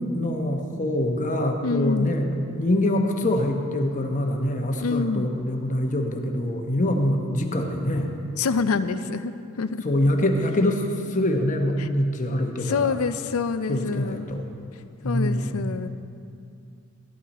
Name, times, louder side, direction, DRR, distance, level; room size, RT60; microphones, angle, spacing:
voice 1, 0.0-2.2 2.6-8.1 9.8-12.9 13.7-14.4 15.0-15.5, left 1 dB, 35° left, 3 dB, 0.9 m, -24 dB
voice 2, 1.6-2.1 4.8-5.3 8.4-9.8 11.8-11.9 12.6-14.2 15.0-15.9, left 4 dB, 75° left, 11 dB, 0.5 m, -26 dB
13.5 x 11.5 x 4.2 m, 2.5 s
head